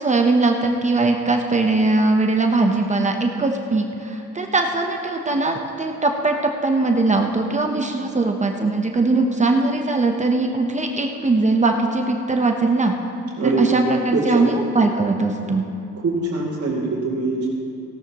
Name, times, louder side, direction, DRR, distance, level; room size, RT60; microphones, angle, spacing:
voice 1, 0.0-12.9 13.4-15.6, right 3 dB, 25° right, 3 dB, 0.8 m, -20 dB
voice 2, 13.4-13.8 14.1-14.5 15.9-17.4, right 3 dB, 55° right, -7 dB, 2.3 m, -23 dB
16.5 x 12.5 x 3.0 m, 2.7 s
cardioid pair, 90°, 30 cm